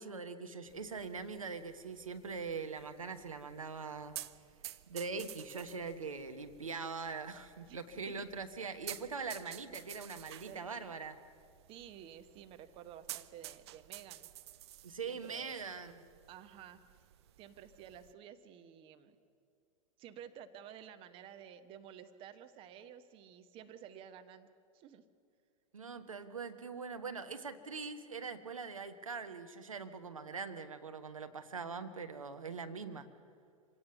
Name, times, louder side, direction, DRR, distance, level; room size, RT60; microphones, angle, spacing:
voice 1, 0.0-4.2 4.9-11.2 14.8-16.0 25.7-33.1, right 4 dB, 75° right, 8 dB, 1.2 m, -42 dB
sound 1, 0.7-18.1, right 14 dB, 50° right, 0.7 m, -52 dB
voice 2, 10.4-10.9 11.7-14.3 15.0-15.6 16.3-17.0 17.4-19.2 20.0-24.5 24.7-25.0 32.9-33.0, right 9 dB, 30° right, 9 dB, 1.2 m, -52 dB
26.5 x 17.5 x 6.9 m, 2.2 s
figure-of-eight pair, 95°, 17 cm